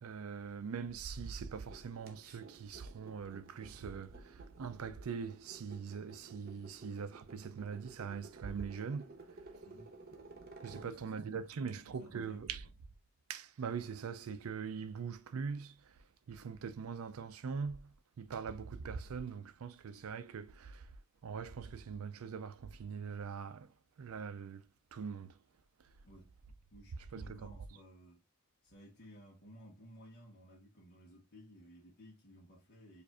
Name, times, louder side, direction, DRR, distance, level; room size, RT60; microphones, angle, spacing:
voice 1, 0.0-9.4 10.6-12.6 13.3-16.0 16.3-20.9 21.2-25.4 27.1-27.5, right 6 dB, 80° right, 0.4 m, -42 dB
sound 1, 1.4-11.7, right 3 dB, 45° right, 0.8 m, -55 dB
voice 2, 9.6-10.0 10.7-11.2 11.6-12.7 26.0-26.4 26.7-28.2 28.6-33.0, equal, 50° left, 1.0 m, -57 dB
4.8 x 2.6 x 2.2 m
head